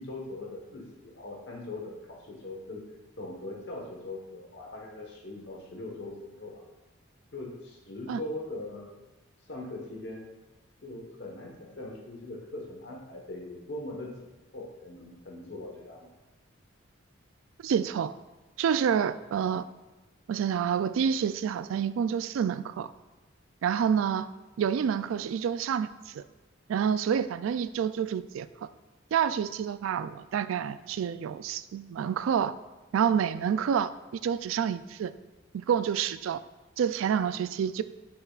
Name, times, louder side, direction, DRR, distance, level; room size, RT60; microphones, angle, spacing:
voice 1, 0.0-2.8 3.2-6.6 7.3-8.9 9.5-10.2 10.8-14.1 14.5-16.1, left 2 dB, 60° left, -1 dB, 1.2 m, -41 dB
voice 2, 17.6-18.1 18.6-19.7 20.3-22.9 23.6-24.3 24.6-26.2 26.7-28.5 29.1-32.5 32.9-35.1 35.5-36.4 36.8-37.8, right 8 dB, 80° right, 15 dB, 0.3 m, -28 dB
6.9 x 6.7 x 2.4 m, 1.2 s
head